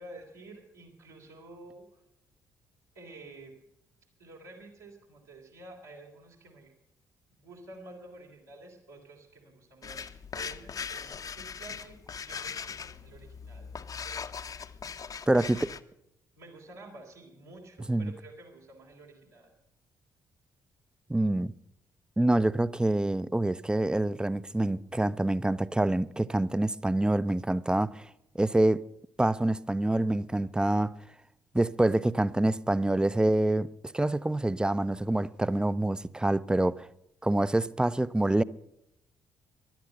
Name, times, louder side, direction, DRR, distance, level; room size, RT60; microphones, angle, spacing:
voice 1, 0.0-2.0 2.9-3.5 4.2-6.7 7.4-12.0 12.2-14.2 15.3-15.6 16.3-19.5, right 2 dB, 75° right, 3.3 m, -50 dB
sound 1, 9.8-15.8, left 6 dB, 35° left, 0.7 m, -40 dB
voice 2, 15.3-15.6 17.9-18.1 21.1-21.5 22.2-28.1 28.4-28.8 29.2-30.9 31.5-33.7 33.9-36.9 37.2-38.4, right 1 dB, 10° right, 0.5 m, -26 dB
15.0 x 11.5 x 6.6 m
figure-of-eight pair, 40°, 10 cm